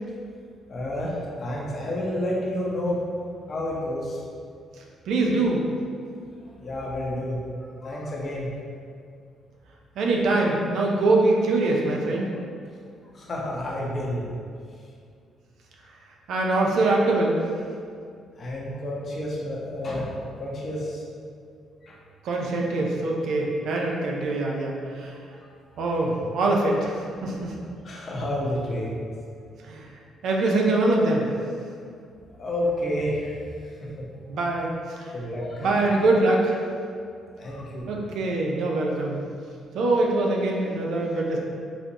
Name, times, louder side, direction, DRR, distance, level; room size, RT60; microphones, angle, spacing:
voice 1, 0.7-3.0 3.5-4.2 6.6-7.4 7.8-8.5 10.2-10.3 13.1-14.3 18.4-20.1 20.4-21.0 21.8-22.0 25.1-25.5 25.7-26.0 27.2-27.6 27.8-28.9 31.8-31.9 32.4-33.3 33.8-34.1 34.9-35.9 37.4-37.9, left 1 dB, 45° left, -4 dB, 0.8 m, -30 dB
voice 2, 5.1-5.7 10.0-12.3 16.3-17.4 22.2-25.1 25.8-27.5 29.7-29.9 30.2-31.3 34.3-35.1 35.6-36.6 37.9-39.2 39.7-41.4, right 2 dB, 75° right, -1 dB, 0.5 m, -23 dB
4.0 x 2.5 x 2.9 m, 2.3 s
cardioid pair, 90°, 0 cm